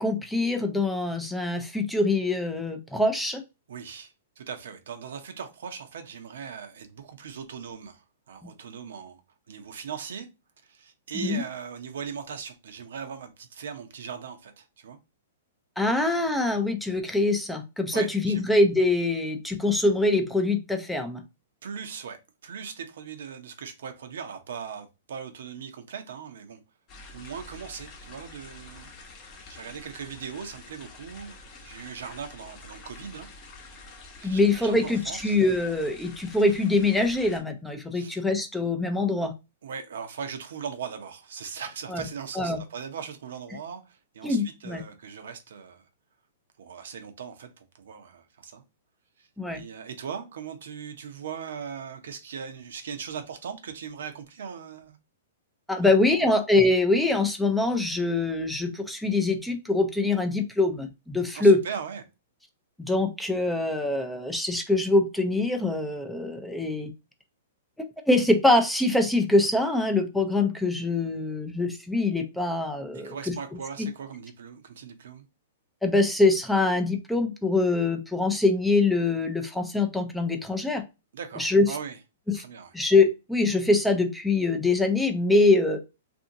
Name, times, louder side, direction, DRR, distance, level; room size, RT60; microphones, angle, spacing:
voice 1, 0.0-3.4 8.4-8.5 11.2-11.4 15.8-21.2 34.2-39.3 41.9-42.1 42.4-42.6 44.2-44.8 49.4-49.6 55.7-61.6 62.8-66.9 68.1-73.3 73.8-73.9 75.8-80.8 81.4-81.7 82.3-82.4 82.7-85.9, left 2 dB, 5° left, 0.4 m, -24 dB
voice 2, 3.7-9.2 9.5-10.3 10.6-15.0 17.9-18.4 21.6-26.6 27.1-28.9 29.5-33.3 34.2-35.4 37.9-38.2 39.6-45.8 46.6-48.6 49.2-55.0 55.8-56.3 61.3-62.0 72.9-75.3 81.1-82.0 82.3-82.7, right 7 dB, 75° right, 0.6 m, -39 dB
sound 1, 26.9-37.4, left 3 dB, 30° left, 0.8 m, -47 dB
2.7 x 2.6 x 2.6 m
hypercardioid pair, 145°, 0 cm